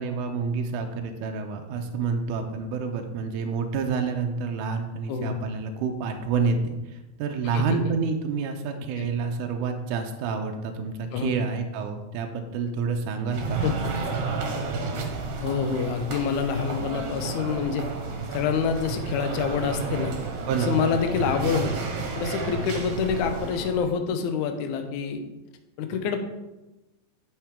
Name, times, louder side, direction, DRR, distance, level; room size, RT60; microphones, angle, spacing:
voice 1, 0.0-13.6 20.5-20.8, right 5 dB, 85° right, 4 dB, 1.8 m, -28 dB
voice 2, 5.1-5.4 7.4-7.9 9.0-9.1 11.1-11.4 13.6-13.9 15.4-17.9 18.3-20.1 20.6-21.7 22.2-25.2 25.8-26.2, left 6 dB, 80° left, 7 dB, 1.8 m, -27 dB
sound 1, 13.3-23.9, right 4 dB, 65° right, 2.5 m, -31 dB
8.7 x 8.2 x 3.6 m, 1.0 s
omnidirectional pair, 4.5 m